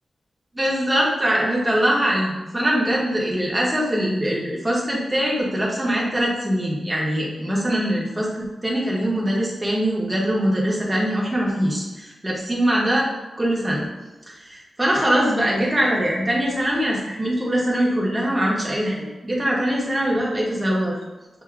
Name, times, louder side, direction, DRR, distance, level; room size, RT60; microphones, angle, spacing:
voice 1, 0.5-13.1 13.4-13.9 14.4-21.0, equal, 10° right, -4 dB, 1.1 m, -22 dB
7.0 x 2.7 x 2.4 m, 1.1 s
wide cardioid pair, 150°, 0 cm